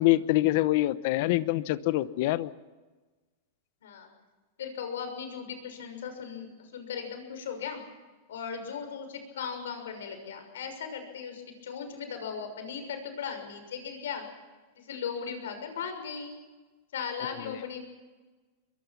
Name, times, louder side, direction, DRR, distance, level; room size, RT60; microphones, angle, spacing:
voice 1, 0.0-2.5 17.4-17.6, left 17 dB, 55° left, 16 dB, 1.0 m, -25 dB
voice 2, 4.6-7.8 8.3-14.2 14.8-16.3 16.9-17.8, left 7 dB, 90° left, 7 dB, 6.3 m, -37 dB
23.5 x 22.5 x 6.1 m, 1.3 s
supercardioid pair, 145°, 0 cm